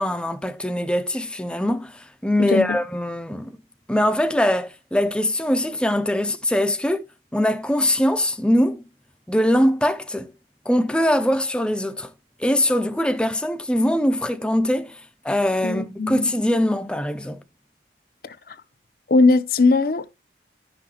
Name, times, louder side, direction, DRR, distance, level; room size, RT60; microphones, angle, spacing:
voice 1, 0.0-3.6 3.9-7.1 7.3-8.8 9.3-10.3 10.7-12.1 12.4-17.4, left 1 dB, 5° left, 0.4 m, -22 dB
voice 2, 15.6-16.2 18.2-18.6 19.1-20.1, left 3 dB, 55° left, 0.6 m, -19 dB
10.5 x 5.8 x 2.9 m
head